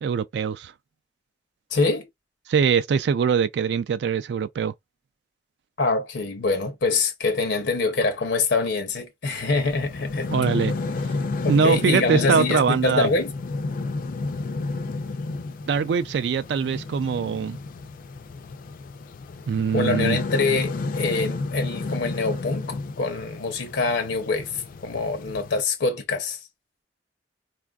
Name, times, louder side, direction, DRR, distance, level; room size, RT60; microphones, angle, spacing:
voice 1, 0.0-0.7 2.5-4.7 10.3-10.7 11.5-13.1 15.7-17.6 19.5-20.2, right 6 dB, 70° right, 0.3 m, -22 dB
voice 2, 1.7-2.1 5.8-10.3 11.4-13.3 19.7-26.5, left 3 dB, 80° left, 0.7 m, -25 dB
sound 1, 9.3-25.6, left 3 dB, 50° left, 0.4 m, -31 dB
4.1 x 2.4 x 2.3 m
head